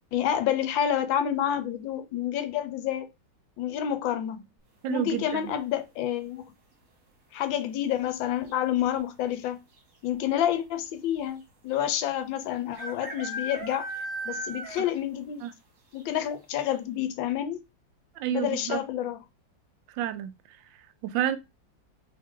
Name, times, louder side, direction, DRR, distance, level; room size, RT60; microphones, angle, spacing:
voice 1, 0.1-3.1 3.6-4.4 4.9-6.4 7.3-9.6 10.0-13.9 14.2-15.4 15.9-17.6 18.3-19.2, left 10 dB, 80° left, 1.4 m, -28 dB
voice 2, 4.8-5.5 14.8-14.9 15.4-15.5 18.1-18.8 19.9-20.3 20.7-21.4, right 10 dB, 80° right, 1.3 m, -30 dB
sound 1, 5.2-5.7 7.5-7.9 8.2-8.3 8.5-9.0 9.8-9.9 10.1-10.2 11.7-11.8 12.8-15.1 15.4-15.5 16.0-16.1 16.5-16.6, right 1 dB, 50° right, 1.4 m, -37 dB
3.8 x 3.2 x 3.6 m
omnidirectional pair, 2.1 m